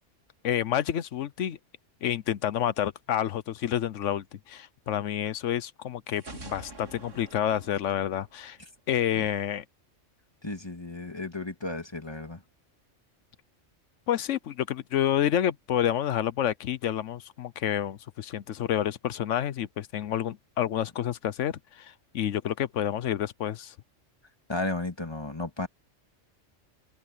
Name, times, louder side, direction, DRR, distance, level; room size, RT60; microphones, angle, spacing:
voice 1, 0.4-1.6 2.0-8.6 8.9-9.6 14.1-23.7, left 10 dB, 80° left, 1.1 m, -29 dB
sound 1, 6.1-9.0, right 3 dB, 75° right, 3.2 m, -46 dB
voice 2, 10.4-12.4 24.5-25.7, left 2 dB, 20° left, 2.2 m, -34 dB
omnidirectional pair, 1.3 m